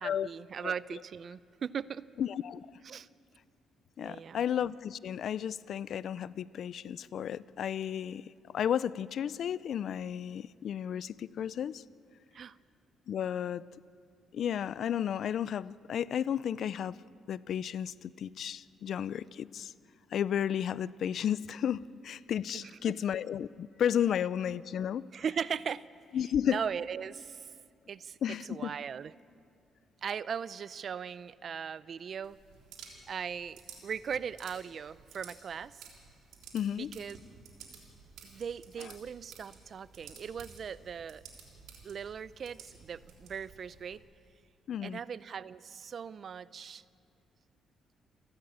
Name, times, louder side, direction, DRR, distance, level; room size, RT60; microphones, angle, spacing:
voice 1, 0.0-2.1 2.8-3.1 4.0-4.4 12.3-12.6 22.5-23.0 25.1-25.8 26.4-27.5 27.9-29.1 30.0-32.4 33.1-35.8 36.8-37.2 38.2-41.2 41.8-44.0 44.8-46.8, right 7 dB, 55° right, 18 dB, 0.5 m, -39 dB
voice 2, 2.2-2.7 4.0-11.8 13.1-13.6 14.3-17.0 17.3-19.7 20.1-25.1 26.1-26.6 28.2-28.7 36.5-36.9 44.7-45.0, left 9 dB, 65° left, 19 dB, 0.4 m, -33 dB
sound 1, 32.2-44.0, right 6 dB, 90° right, 3.5 m, -54 dB
29.0 x 12.5 x 8.7 m, 2.4 s
cardioid pair, 90°, 0 cm